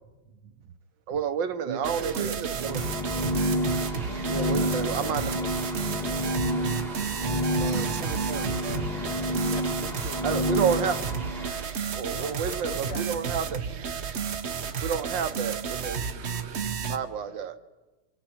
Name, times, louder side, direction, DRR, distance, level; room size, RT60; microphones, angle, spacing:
Walk footsteps, 1.1-1.4 2.2-2.4 3.3-3.5 3.8-5.3 5.5-5.7 6.1-6.3 6.6-6.8 7.1-7.4 7.7-7.9 8.6-9.3, left 2 dB, 45° left, 2.0 m, -45 dB
voice 1, 1.1-2.8 4.3-5.3 10.2-11.0 11.9-13.6 14.8-16.1 16.8-17.6, right 7 dB, 70° right, 9 dB, 1.6 m, -30 dB
voice 2, 1.7-2.6 6.6-8.5 14.6-14.9 16.9-17.5, right 8 dB, 85° right, 8 dB, 1.9 m, -40 dB
sound 1, 1.8-17.0, right 6 dB, 50° right, 0.8 m, -32 dB
sound 2, 2.6-11.7, left 1 dB, ahead, 1.3 m, -29 dB
voice 3, 3.8-5.5 9.5-10.3 12.1-13.2, left 2 dB, 75° left, 1 dB, 3.2 m, -42 dB
29.0 x 25.0 x 4.4 m, 1.2 s
omnidirectional pair, 2.1 m